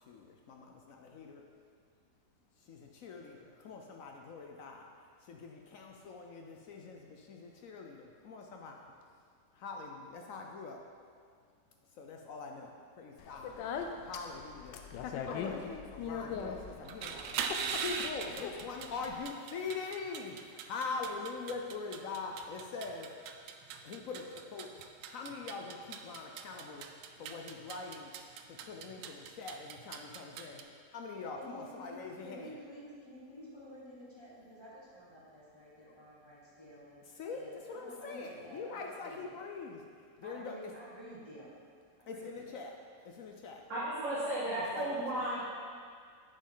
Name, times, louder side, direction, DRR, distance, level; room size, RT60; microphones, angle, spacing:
voice 1, 0.1-1.4 2.6-4.9 5.2-8.8 9.5-10.8 12.0-13.5 14.0-14.8 15.3-17.2 17.8-23.1 23.8-24.8 25.1-26.9 27.2-28.1 28.6-32.6 37.1-39.8 40.2-40.7 42.1-42.8 43.0-43.6 44.7-45.0, left 4 dB, 65° left, 2 dB, 0.8 m, -43 dB
Speech, 13.2-19.2, left 6 dB, 85° left, 1.3 m, -41 dB
sound 1, 16.8-30.6, right 6 dB, 85° right, 1.2 m, -42 dB
voice 2, 31.4-37.0 37.3-39.4 40.2-41.6 42.0-42.5, equal, 15° left, -8 dB, 1.5 m, -51 dB
voice 3, 43.7-45.4, right 1 dB, 45° right, -12 dB, 2.1 m, -34 dB
10.0 x 5.2 x 3.8 m, 2.1 s
omnidirectional pair, 1.9 m